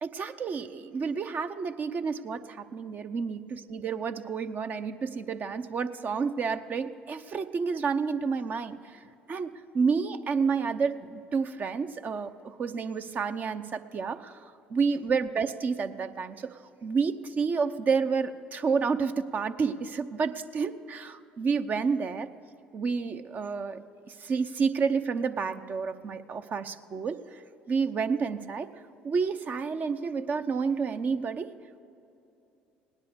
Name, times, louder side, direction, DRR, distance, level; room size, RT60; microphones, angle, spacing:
voice 1, 0.0-9.0 9.3-14.4 14.7-22.3 22.7-23.8 24.1-27.4 27.7-28.7 29.0-31.5, right 5 dB, 45° right, 9 dB, 0.7 m, -30 dB
17.5 x 10.5 x 6.8 m, 2.8 s
hypercardioid pair, 70°, 4 cm